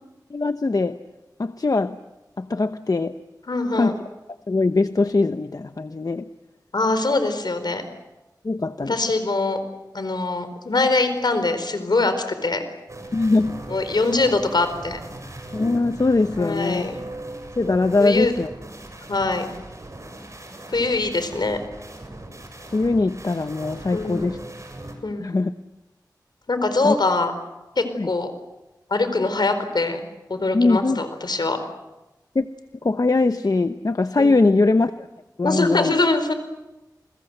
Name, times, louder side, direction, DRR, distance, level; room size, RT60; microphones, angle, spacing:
voice 1, 0.3-1.0 1.4-2.0 2.4-3.2 3.7-3.9 4.5-6.3 8.4-9.0 13.1-13.6 15.5-16.9 17.6-18.5 22.7-24.4 25.2-25.5 26.8-26.9 27.9-28.1 30.5-31.0 32.3-32.5 32.8-35.1 35.4-35.9, left 3 dB, 55° left, 9 dB, 0.9 m, -21 dB
voice 2, 3.5-4.0 6.7-7.9 8.9-9.6 9.9-12.6 13.7-15.0 16.4-17.0 18.0-18.3 19.1-19.4 20.7-21.6 23.9-24.3 25.0-25.3 26.5-27.3 27.8-28.3 28.9-30.0 30.3-31.6 34.2-34.3 35.4-36.3, left 3 dB, 75° left, 9 dB, 4.4 m, -23 dB
sound 1, 12.9-24.9, right 1 dB, 45° right, 7.0 m, -38 dB
29.5 x 22.0 x 7.9 m, 1.0 s
wide cardioid pair, 60°, 7 cm